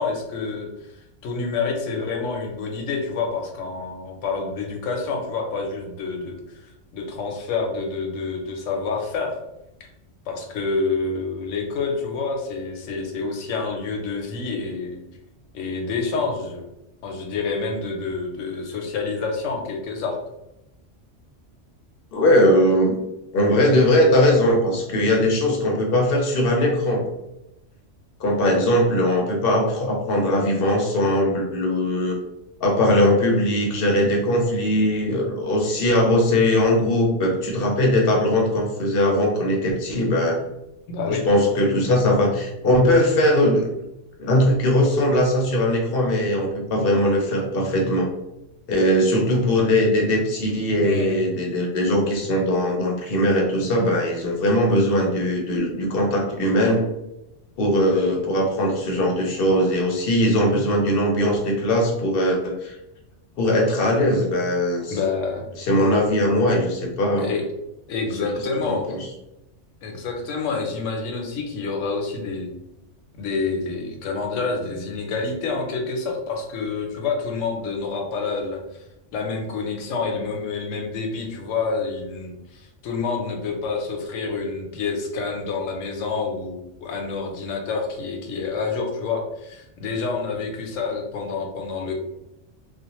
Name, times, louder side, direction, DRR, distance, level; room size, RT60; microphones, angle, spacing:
voice 1, 0.0-6.4 6.6-9.4 10.3-15.0 15.5-16.6 17.0-20.2 40.9-41.2 50.8-51.2 64.9-65.5 67.2-67.5 67.9-68.9 69.8-72.5 73.2-78.8 79.1-91.9, left 4 dB, 85° left, 2 dB, 0.9 m, -28 dB
voice 2, 22.1-23.0 23.3-27.0 28.2-32.2 32.6-40.4 41.1-43.6 44.2-48.1 48.7-56.8 57.6-62.8 63.4-65.0 65.6-67.3 68.1-68.3 68.7-69.0, left 1 dB, 60° left, 0 dB, 0.7 m, -20 dB
2.4 x 2.1 x 2.8 m, 0.90 s
omnidirectional pair, 1.3 m